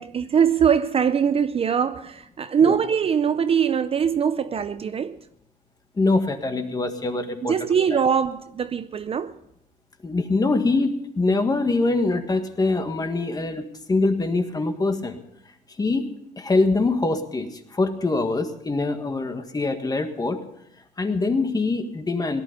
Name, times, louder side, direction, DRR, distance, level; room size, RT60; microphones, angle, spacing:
voice 1, 0.0-5.2 7.4-9.4, right 7 dB, 35° right, 12 dB, 0.5 m, -22 dB
voice 2, 5.9-7.5 10.0-13.6 13.9-15.2 15.8-20.4 21.0-22.4, left 3 dB, 20° left, 7 dB, 1.7 m, -24 dB
18.0 x 11.5 x 5.4 m, 0.78 s
cardioid pair, 110°, 17 cm